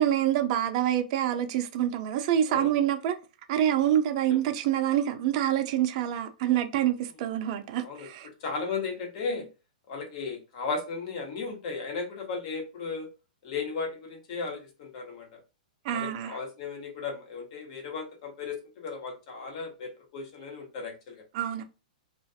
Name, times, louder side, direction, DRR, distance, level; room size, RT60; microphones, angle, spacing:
voice 1, 0.0-3.2 3.5-8.3 15.8-16.4 21.3-21.6, right 11 dB, 50° right, 0.5 m, -26 dB
voice 2, 2.5-2.9 4.3-4.4 7.8-9.5 9.9-13.1 13.4-15.4 15.9-21.2, left 4 dB, 50° left, 1.1 m, -35 dB
2.4 x 2.4 x 2.6 m
hypercardioid pair, 130°, 5 cm